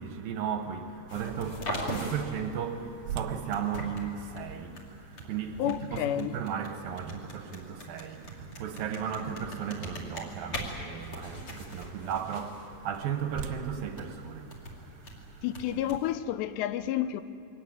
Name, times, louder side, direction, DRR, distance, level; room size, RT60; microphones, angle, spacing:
voice 1, 0.0-15.7, right 7 dB, 70° right, 2.5 m, -35 dB
sound 1, 1.1-16.2, equal, 35° left, 3.3 m, -42 dB
sound 2, 3.1-9.0 9.6-9.7 10.3-10.5 12.6-15.2, right 8 dB, 85° right, 3.0 m, -45 dB
voice 2, 5.6-6.3 15.4-17.2, left 12 dB, 85° left, 2.9 m, -30 dB
23.5 x 17.5 x 9.6 m
omnidirectional pair, 4.9 m